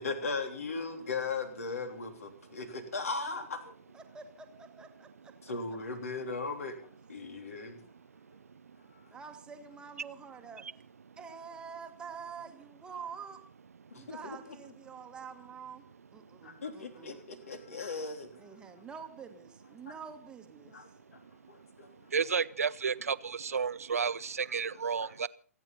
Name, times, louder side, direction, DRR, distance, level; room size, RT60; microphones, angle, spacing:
voice 1, 0.0-3.7 5.4-6.8 7.1-7.8 13.9-14.4 16.4-18.5 19.9-20.0 20.7-20.9 21.5-22.1 25.0-25.3, left 4 dB, 60° left, 6 dB, 3.5 m, -38 dB
voice 2, 3.9-5.3 9.1-10.6 11.2-13.4 14.0-15.8 16.1-17.2 18.4-20.8, right 6 dB, 10° right, 5 dB, 1.6 m, -47 dB
voice 3, 22.1-25.3, right 6 dB, 65° right, 17 dB, 0.6 m, -31 dB
28.0 x 9.9 x 4.1 m, 0.43 s
figure-of-eight pair, 120°, 9 cm